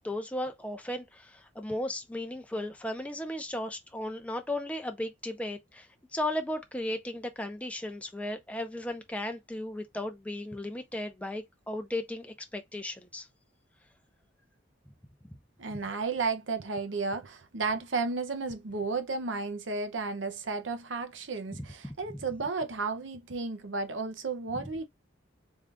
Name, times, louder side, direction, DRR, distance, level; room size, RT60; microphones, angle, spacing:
voice 1, 0.0-5.9 6.1-13.3 21.5-21.7 24.6-24.7, left 1 dB, 5° left, 0.6 m, -35 dB
voice 2, 15.6-24.9, right 4 dB, 70° right, 0.8 m, -33 dB
3.7 x 2.4 x 3.4 m
head